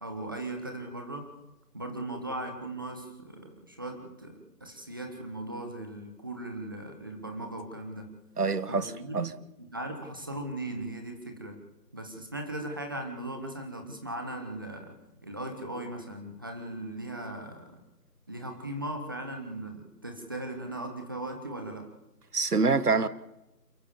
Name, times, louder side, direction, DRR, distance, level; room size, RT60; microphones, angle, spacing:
voice 1, 0.0-1.3 1.7-8.1 8.7-9.3 9.6-11.6 11.9-17.8 18.3-21.9, right 1 dB, 15° right, 5 dB, 1.3 m, -38 dB
voice 2, 8.4-9.3 22.3-23.1, right 4 dB, 70° right, 15 dB, 1.6 m, -26 dB
28.0 x 13.0 x 7.2 m, 0.91 s
figure-of-eight pair, 165°, 48 cm